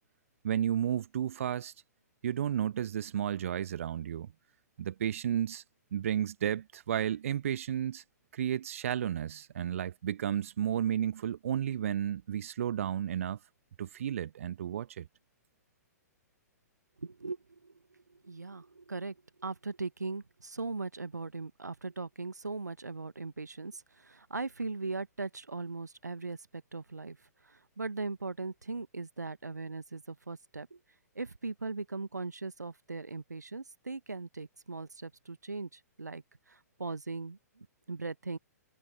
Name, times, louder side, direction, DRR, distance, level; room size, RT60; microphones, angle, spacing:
voice 1, 0.4-1.7 2.2-4.3 4.8-5.6 5.9-8.0 8.3-13.4 13.8-15.1, right 10 dB, 50° right, 1.1 m, -32 dB
voice 2, 17.0-30.8 31.1-38.4, right 3 dB, 75° right, 1.1 m, -39 dB
figure-of-eight pair, 115°, 9 cm